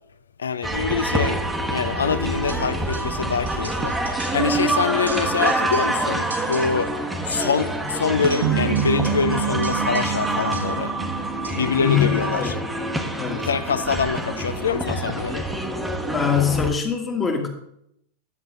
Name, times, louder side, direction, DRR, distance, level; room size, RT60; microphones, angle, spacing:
voice 1, 0.4-1.4 1.7-3.9 4.3-6.9 7.3-10.9 11.6-12.5 13.4-15.5, left 6 dB, 70° left, 0.5 m, -25 dB
sound 1, 0.6-16.7, right 1 dB, 5° right, 1.0 m, -26 dB
sound 2, 2.5-3.2 3.5-4.7 5.0-6.0 6.3-6.9 7.3-10.9 11.4-11.8, right 2 dB, 80° right, 1.5 m, -41 dB
sound 3, 8.4-12.8, right 7 dB, 50° right, 0.7 m, -27 dB
voice 2, 11.8-12.6 13.2-13.5 16.1-17.5, left 7 dB, 20° left, 1.5 m, -23 dB
10.5 x 7.7 x 3.8 m
figure-of-eight pair, 90°, 0 cm